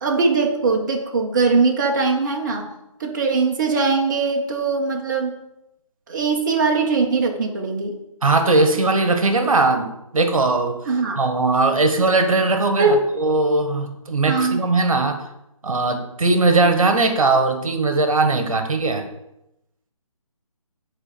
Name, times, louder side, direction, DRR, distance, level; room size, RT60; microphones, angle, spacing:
voice 1, 0.0-2.7 3.0-5.4 6.1-8.0 10.9-11.2 12.8-13.0 14.3-14.6, right 4 dB, 35° right, 1 dB, 1.5 m, -21 dB
voice 2, 8.2-9.9 10.1-10.8 11.2-15.2 15.6-19.1, right 3 dB, 70° right, 6 dB, 1.7 m, -19 dB
8.7 x 4.9 x 6.9 m, 0.84 s
hypercardioid pair, 160°, 18 cm